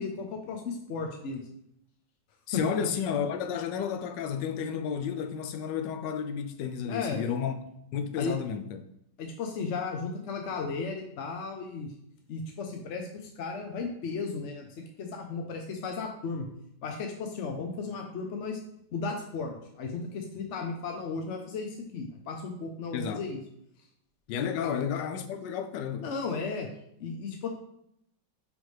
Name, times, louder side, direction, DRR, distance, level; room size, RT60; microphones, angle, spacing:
voice 1, 0.0-1.4 2.5-2.6 6.9-7.4 8.2-8.3 9.2-11.9 12.3-16.5 16.8-18.6 18.9-23.4 26.0-26.7 27.0-27.5, left 4 dB, 60° left, 0.8 m, -35 dB
voice 2, 2.5-7.6 7.9-8.8 22.9-23.3 24.3-26.1, left 7 dB, 80° left, 1.2 m, -32 dB
9.1 x 3.5 x 3.2 m
omnidirectional pair, 1.9 m